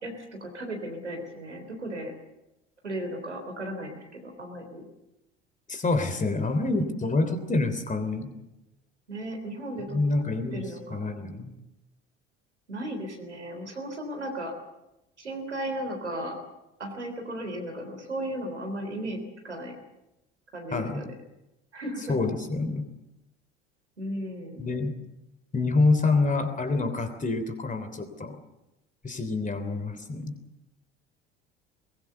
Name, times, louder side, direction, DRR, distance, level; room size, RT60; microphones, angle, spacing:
voice 1, 0.0-2.1 2.8-4.8 9.1-10.0 10.5-11.0 12.7-14.5 15.2-16.4 16.8-19.8 20.5-21.1 21.7-22.2 24.0-24.7, right 1 dB, 85° right, 3 dB, 3.7 m, -35 dB
voice 2, 5.7-8.3 9.8-11.5 20.7-21.0 22.1-22.9 24.6-24.9 25.5-28.4 29.0-30.4, left 3 dB, 25° left, 9 dB, 3.4 m, -27 dB
22.0 x 21.0 x 6.9 m, 0.94 s
figure-of-eight pair, 60°, 34 cm